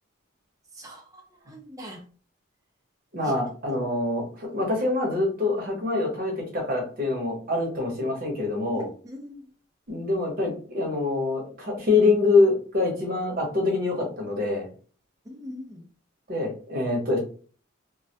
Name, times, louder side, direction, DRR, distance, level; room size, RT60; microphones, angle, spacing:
voice 1, 0.7-1.2 1.5-2.0 3.2-3.3 8.7-9.4 15.3-15.8, left 1 dB, 15° right, 1 dB, 0.5 m, -42 dB
voice 2, 3.1-8.9 9.9-14.6 16.3-17.2, left 3 dB, 45° right, 0 dB, 0.8 m, -25 dB
2.1 x 2.1 x 2.7 m, 0.40 s
head